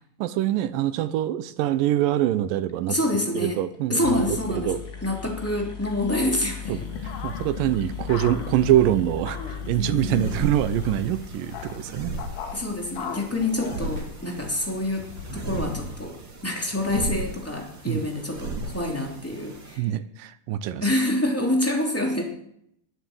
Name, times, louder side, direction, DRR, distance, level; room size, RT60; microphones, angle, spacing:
voice 1, 0.2-3.0 3.4-4.8 6.7-12.1 17.9-18.0 19.8-20.9, right 12 dB, 80° right, 13 dB, 2.4 m, -24 dB
voice 2, 2.9-3.6 3.9-6.9 9.8-10.4 12.5-16.1 16.4-19.9 20.8-22.2, left 1 dB, 5° left, 0 dB, 2.3 m, -27 dB
sound 1, 3.7-3.8 4.0-11.9, left 7 dB, 35° left, 1.8 m, -37 dB
sound 2, 6.6-16.1, left 5 dB, 65° left, 2.7 m, -39 dB
sound 3, 10.0-19.8, right 2 dB, 35° right, 2.8 m, -36 dB
21.0 x 7.3 x 7.9 m, 0.75 s
omnidirectional pair, 4.2 m